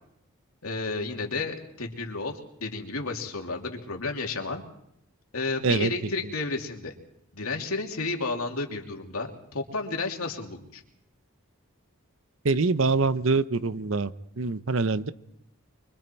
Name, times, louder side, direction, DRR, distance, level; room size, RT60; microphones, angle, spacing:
voice 1, 0.6-4.6 5.3-6.9 7.3-10.8, left 3 dB, 90° left, 2 dB, 2.8 m, -32 dB
voice 2, 12.4-15.1, right 3 dB, 65° right, 13 dB, 0.8 m, -25 dB
25.0 x 24.5 x 4.5 m, 0.74 s
head